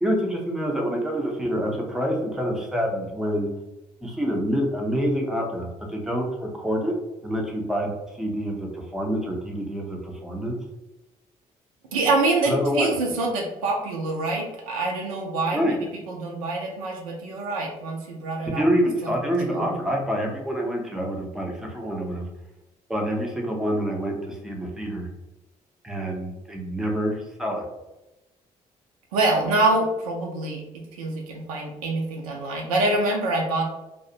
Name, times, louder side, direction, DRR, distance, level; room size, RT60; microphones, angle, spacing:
voice 1, 0.0-3.5 4.0-6.9 7.2-10.5 12.5-12.9 15.5-15.8 18.5-22.3 22.9-25.1 25.8-27.7, equal, ahead, 0 dB, 0.6 m, -27 dB
voice 2, 11.9-18.6 19.0-19.1 19.5-19.7 29.1-33.6, right 2 dB, 70° right, 0 dB, 0.4 m, -25 dB
2.3 x 2.0 x 2.7 m, 0.98 s
figure-of-eight pair, 45°, 19 cm